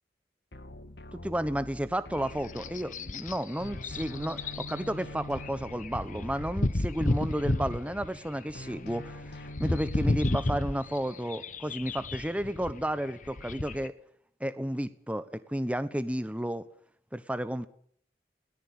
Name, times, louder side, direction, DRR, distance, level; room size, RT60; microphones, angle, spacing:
sound 1, 0.5-3.3 3.6-8.3 8.5-10.4, left 1 dB, 70° left, 2.1 m, -45 dB
voice 1, 1.1-13.9 14.4-16.6 17.1-17.7, equal, 5° right, 12 dB, 1.1 m, -32 dB
sound 2, 2.1-13.9, left 2 dB, 45° left, 1.1 m, -33 dB
20.5 x 18.5 x 8.9 m, 0.62 s
head